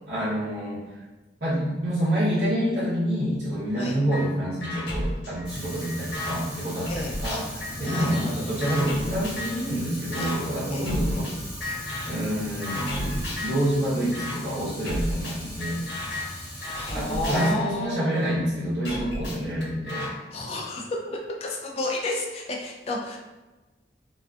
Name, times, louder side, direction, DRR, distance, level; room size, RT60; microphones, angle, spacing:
voice 1, 0.1-1.0 1.4-11.3 12.0-15.8 16.9-20.1, equal, 80° right, -9 dB, 0.7 m, -27 dB
sound 1, 4.1-4.2 4.6-6.4 6.8-9.7 10.1-10.4 10.8-11.3 11.6-12.2 12.6-13.6 14.1-14.3 14.8-18.3 18.8-20.1, left 1 dB, 85° left, 0.7 m, -33 dB
Fire, 5.4-17.5, equal, 5° right, 0.8 m, -38 dB
voice 2, 16.7-18.1 20.3-23.2, left 2 dB, 35° left, -1 dB, 0.3 m, -31 dB
2.5 x 2.3 x 2.3 m, 1.2 s
head